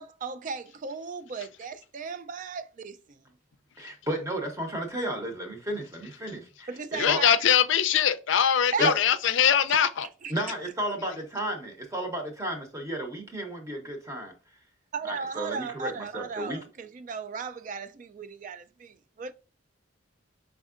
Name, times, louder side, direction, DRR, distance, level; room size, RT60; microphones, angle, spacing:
voice 1, 0.0-3.2 6.7-7.4 8.7-9.0 9.7-9.8 10.2-10.3 14.9-19.3, right 5 dB, 40° right, 0.3 m, -35 dB
voice 2, 3.8-7.2 8.8-8.9 10.3-14.3 15.0-16.6, right 1 dB, 15° right, 0.7 m, -33 dB
voice 3, 7.0-10.1, left 8 dB, 65° left, 0.4 m, -22 dB
5.2 x 3.5 x 2.4 m
head